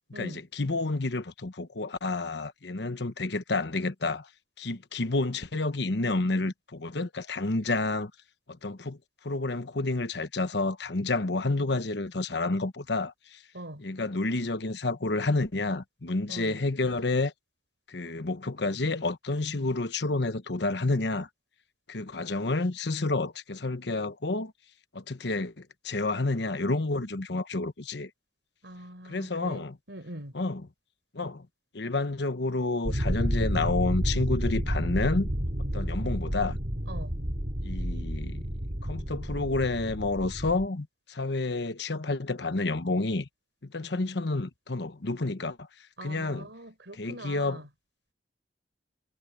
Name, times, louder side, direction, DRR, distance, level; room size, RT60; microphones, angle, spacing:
voice 1, 0.1-4.3 4.6-8.1 8.6-9.0 9.2-13.4 13.8-17.3 17.9-21.3 21.9-24.5 24.9-28.1 29.1-29.8 30.3-30.6 31.1-31.5 31.7-35.3 35.7-36.6 37.6-38.5 38.8-43.3 43.6-45.7 46.0-46.5 47.0-47.6, left 2 dB, 65° left, 1.1 m, -29 dB
voice 2, 16.3-16.6 28.6-30.4 36.9-37.2 46.0-47.7, right 1 dB, 70° right, 5.1 m, -43 dB
sound 1, 32.8-40.7, equal, 45° right, 2.7 m, -30 dB
head